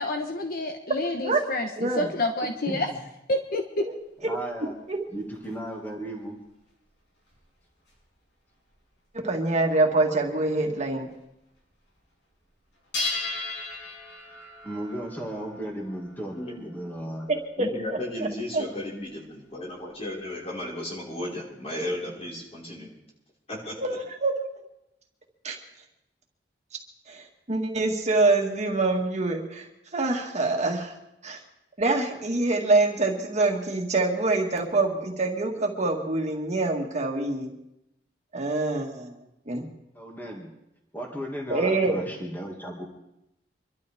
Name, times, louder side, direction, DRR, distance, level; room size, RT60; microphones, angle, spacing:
voice 1, 0.0-2.9 3.3-3.6, left 2 dB, 55° left, 4 dB, 1.1 m, -28 dB
voice 2, 1.8-2.1 3.9-4.0 4.2-4.3 4.9-5.0 9.1-11.1 17.3-17.7 18.5-18.7 23.8-24.3 25.4-25.6 27.1-29.7 29.9-30.9 31.2-31.4 31.8-37.5 38.3-39.1 39.5-39.7 41.5-42.0, right 2 dB, 40° right, 1 dB, 1.9 m, -25 dB
voice 3, 2.4-3.0 4.3-4.7 5.1-6.4 14.6-17.3 39.9-40.5 40.9-42.9, right 1 dB, 10° left, -1 dB, 2.2 m, -35 dB
sound 1, 3.9-5.8 6.4-8.1 8.7-9.0 9.5-9.6 9.8-9.9 10.2-11.2 11.5-12.1 12.4-20.3, left 3 dB, 75° left, 6.8 m, -38 dB
voice 4, 16.4-16.7 17.6-22.9 23.5-23.8, left 1 dB, 35° left, -4 dB, 5.2 m, -34 dB
26.0 x 12.5 x 3.6 m, 0.85 s
head